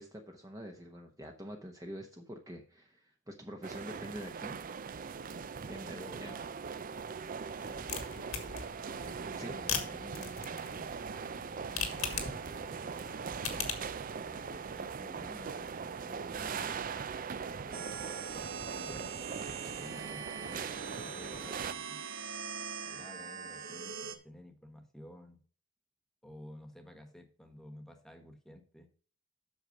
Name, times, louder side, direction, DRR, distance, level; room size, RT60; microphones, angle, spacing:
voice 1, 0.0-4.6 5.7-6.3 9.4-9.5, equal, 15° right, 2 dB, 1.0 m, -46 dB
sound 1, 3.6-21.7, right 6 dB, 40° right, 0.5 m, -41 dB
voice 2, 5.6-6.6 9.4-10.9 11.7-13.7 14.2-16.8 17.3-19.1 19.8-22.0 22.8-25.4 26.2-28.9, left 1 dB, ahead, 7 dB, 1.4 m, -52 dB
sound 2, 7.5-14.0, left 7 dB, 85° left, 2.0 m, -40 dB
sound 3, 17.7-24.2, right 6 dB, 65° right, 1.2 m, -42 dB
8.1 x 6.5 x 5.2 m, 0.43 s
head